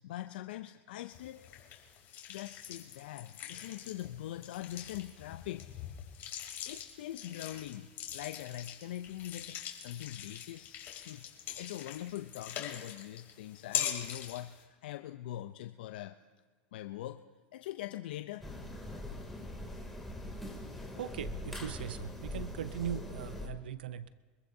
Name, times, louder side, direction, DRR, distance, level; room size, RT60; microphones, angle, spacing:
voice 1, 0.0-1.6 2.3-5.7 6.6-11.3 11.6-16.2 16.7-17.2 17.5-18.5, left 13 dB, 75° left, 8 dB, 0.5 m, -43 dB
sound 1, 1.1-14.6, left 10 dB, 45° left, 3.1 m, -43 dB
sound 2, 18.4-23.5, left 1 dB, 5° left, 2.6 m, -42 dB
voice 2, 21.0-24.1, right 9 dB, 85° right, 16 dB, 0.5 m, -39 dB
25.0 x 14.5 x 2.7 m, 1.4 s
hypercardioid pair, 105°, 5 cm